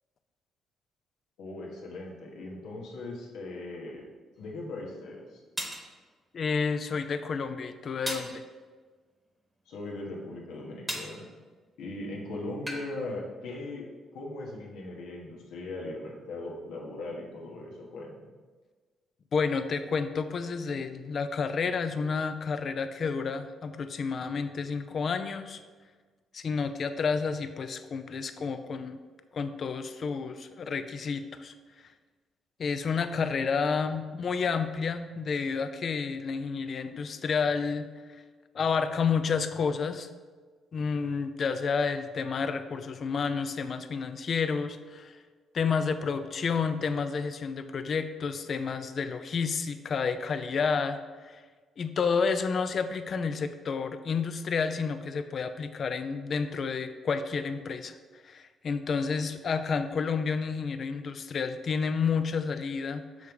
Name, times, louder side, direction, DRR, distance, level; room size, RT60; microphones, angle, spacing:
voice 1, 1.4-4.0 4.4-5.4 9.7-11.3 11.8-13.8 14.1-18.3, left 2 dB, 85° left, -2 dB, 1.3 m, -39 dB
sound 1, 4.4-4.5 5.6-5.9 8.1-8.4 10.9-11.2 12.7-12.9, right 1 dB, 15° right, 1.1 m, -35 dB
voice 2, 6.3-8.4 19.3-25.6 26.3-29.0 29.3-31.5 32.6-37.9 38.5-40.1 40.7-45.2 45.5-51.4 51.8-58.0 58.2-63.3, left 5 dB, 50° left, 10 dB, 0.4 m, -30 dB
6.4 x 3.2 x 5.3 m, 1.4 s
cardioid pair, 90°, 0 cm